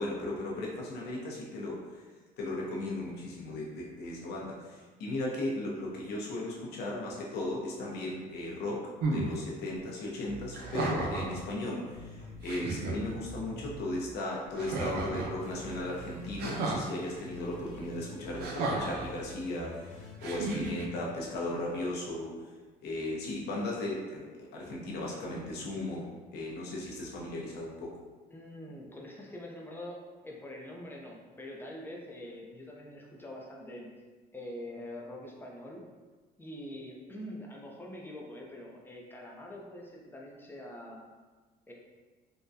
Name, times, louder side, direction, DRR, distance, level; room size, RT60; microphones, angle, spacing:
voice 1, 0.0-2.1 2.4-22.3 22.8-28.0, left 1 dB, 75° left, -3 dB, 0.9 m, -36 dB
sound 1, 9.0-9.3 10.5-11.4 12.0-12.1 12.4-13.0 14.6-15.4 16.4-16.8 18.4-19.1 20.2-20.8, right 2 dB, 70° right, 0.6 m, -33 dB
sound 2, 10.2-11.3 11.8-14.2 14.5-20.9, right 1 dB, 45° left, 0.8 m, -47 dB
voice 2, 28.3-33.9 34.3-35.8 36.4-41.0 41.7-41.8, left 1 dB, 10° left, -2 dB, 0.6 m, -44 dB
3.7 x 2.2 x 2.7 m, 1.3 s
cardioid pair, 110°, 17 cm